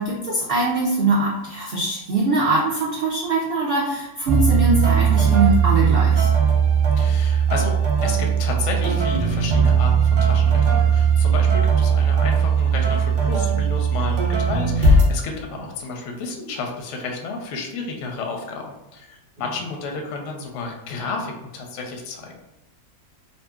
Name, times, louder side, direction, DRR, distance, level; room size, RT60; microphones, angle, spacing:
voice 1, 0.0-6.3, right 2 dB, 80° right, -4 dB, 0.5 m, -22 dB
sound 1, 4.3-15.0, right 6 dB, 60° right, 0.9 m, -18 dB
voice 2, 7.0-22.3, left 4 dB, 70° left, 1 dB, 0.8 m, -31 dB
2.7 x 2.5 x 2.3 m, 0.98 s
omnidirectional pair, 1.6 m